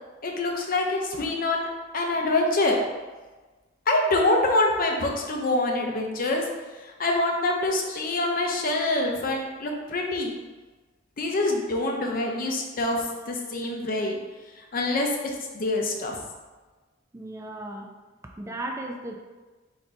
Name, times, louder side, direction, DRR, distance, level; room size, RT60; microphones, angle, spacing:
voice 1, 0.2-1.7 1.9-2.8 3.9-6.4 7.0-10.4 11.2-14.2 14.6-16.2, left 2 dB, 50° left, 1 dB, 0.6 m, -25 dB
voice 2, 17.1-17.9 18.4-19.2, right 1 dB, 15° right, 1 dB, 0.4 m, -35 dB
4.2 x 2.6 x 4.3 m, 1.2 s
head